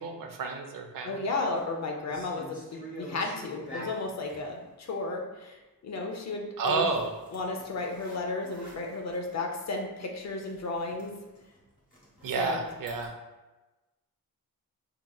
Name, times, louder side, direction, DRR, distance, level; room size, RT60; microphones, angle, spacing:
voice 1, 0.0-1.3 6.6-7.1 12.2-13.1, right 4 dB, 70° right, 4 dB, 0.6 m, -30 dB
voice 2, 1.0-6.9 7.3-11.2 12.4-12.6, left 3 dB, 50° left, 1 dB, 0.6 m, -34 dB
sound 1, 1.5-1.6 2.0-4.5 6.8-9.4 9.8-9.9 10.2-13.1, equal, 25° left, 1.3 m, -47 dB
4.8 x 2.8 x 2.3 m, 1.1 s
wide cardioid pair, 145°, 35 cm